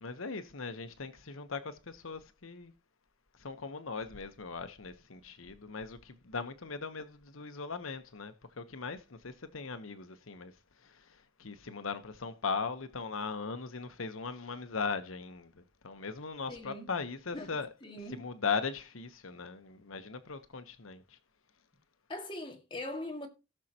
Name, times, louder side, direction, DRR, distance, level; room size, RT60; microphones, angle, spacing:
voice 1, 0.0-2.7 3.3-10.5 10.8-17.7 18.1-21.2, left 5 dB, 90° left, 1.0 m, -39 dB
voice 2, 16.5-16.9 17.3-18.2 22.1-23.3, left 1 dB, 25° left, 2.0 m, -41 dB
17.5 x 6.4 x 2.9 m
head